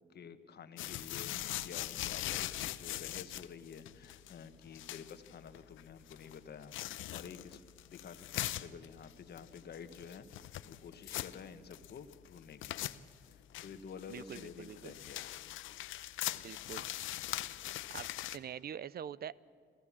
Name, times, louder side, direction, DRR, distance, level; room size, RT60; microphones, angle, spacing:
voice 1, 0.1-10.2 10.6-12.8 13.2-15.2 16.5-16.8, left 6 dB, 55° left, 10 dB, 1.4 m, -50 dB
sound 1, 0.8-18.4, left 14 dB, 85° left, 0.7 m, -42 dB
voice 2, 14.1-14.9 16.4-16.9 17.9-19.4, right 9 dB, 50° right, 21 dB, 0.6 m, -45 dB
27.0 x 15.5 x 7.3 m, 2.3 s
cardioid pair, 90°, 20 cm